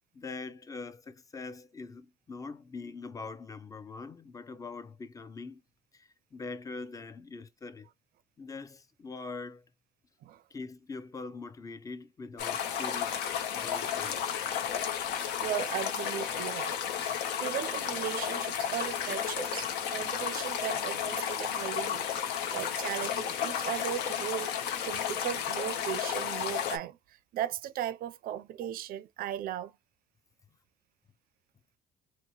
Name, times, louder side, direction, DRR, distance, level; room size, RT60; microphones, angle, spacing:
voice 1, 0.1-5.6 5.9-7.9 8.4-9.6 10.5-13.2 13.6-14.2, left 4 dB, 20° left, 0.5 m, -43 dB
sound 1, 12.4-26.8, left 8 dB, 85° left, 0.7 m, -33 dB
voice 2, 15.4-27.0 27.3-29.7, right 11 dB, 60° right, 0.4 m, -37 dB
2.9 x 2.0 x 4.1 m
cardioid pair, 110°, 17 cm